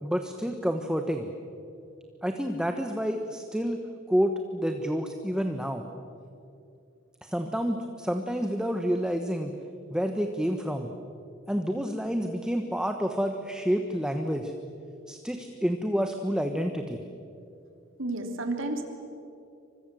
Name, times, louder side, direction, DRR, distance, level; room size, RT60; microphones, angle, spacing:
voice 1, 0.0-1.3 2.2-3.8 4.1-5.8 7.2-9.5 9.9-10.9 11.5-14.5 15.1-17.0, equal, 5° right, 5 dB, 1.2 m, -29 dB
voice 2, 18.0-18.8, right 2 dB, 70° right, 5 dB, 3.5 m, -31 dB
29.0 x 25.0 x 7.7 m, 2.6 s
head